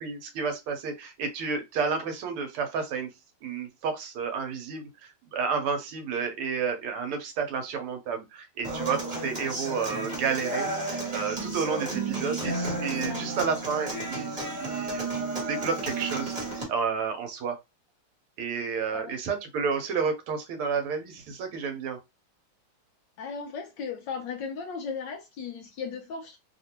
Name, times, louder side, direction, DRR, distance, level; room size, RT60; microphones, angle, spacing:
voice 1, 0.0-3.1 3.4-16.4 16.7-17.6 18.4-22.0, right 5 dB, 80° right, 1.7 m, -31 dB
Human voice / Acoustic guitar, 8.6-16.6, right 2 dB, 20° right, 1.1 m, -32 dB
voice 2, 13.0-13.3 18.9-19.1 23.2-26.4, left 5 dB, 75° left, 1.1 m, -36 dB
3.4 x 2.5 x 2.8 m
omnidirectional pair, 2.4 m